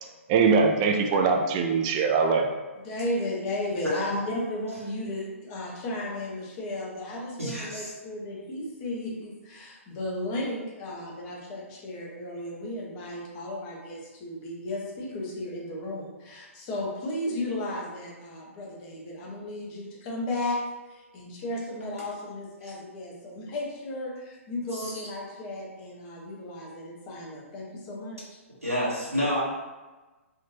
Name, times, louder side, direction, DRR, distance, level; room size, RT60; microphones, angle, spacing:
voice 1, 0.3-2.5, right 5 dB, 25° right, 3 dB, 0.3 m, -22 dB
voice 2, 2.8-28.2, left 1 dB, 30° left, -3 dB, 0.8 m, -34 dB
voice 3, 7.4-7.9 22.6-22.7 24.7-25.1 28.6-29.4, equal, 85° right, -8 dB, 1.3 m, -29 dB
3.6 x 2.5 x 2.6 m, 1.2 s
figure-of-eight pair, 120°, 8 cm